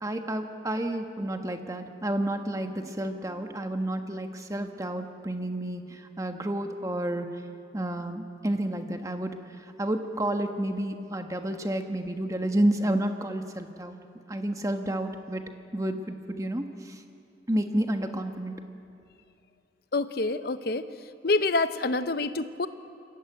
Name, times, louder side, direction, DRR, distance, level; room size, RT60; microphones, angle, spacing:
voice 1, 0.0-7.4 7.7-14.0 14.3-15.4 15.7-17.0 17.5-18.6, right 1 dB, 20° right, 5 dB, 1.3 m, -30 dB
voice 2, 19.9-20.9 21.2-22.7, left 3 dB, 60° left, 11 dB, 0.8 m, -27 dB
23.0 x 16.5 x 9.1 m, 2.6 s
head